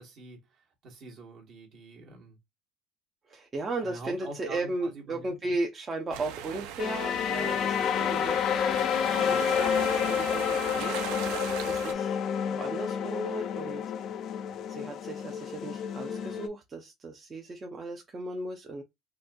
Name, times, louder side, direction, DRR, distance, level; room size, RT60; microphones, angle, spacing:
voice 1, 0.0-2.4 3.8-5.6, right 2 dB, 45° right, 1.2 m, -45 dB
voice 2, 3.3-8.4 9.0-12.2 12.5-14.0 14.7-18.8, right 2 dB, 20° right, 0.5 m, -36 dB
sound 1, 6.1-11.9, right 10 dB, 85° right, 0.5 m, -39 dB
sound 2, 6.8-16.5, left 8 dB, 40° left, 0.3 m, -29 dB
4.0 x 2.5 x 2.2 m
cardioid pair, 170°, 0 cm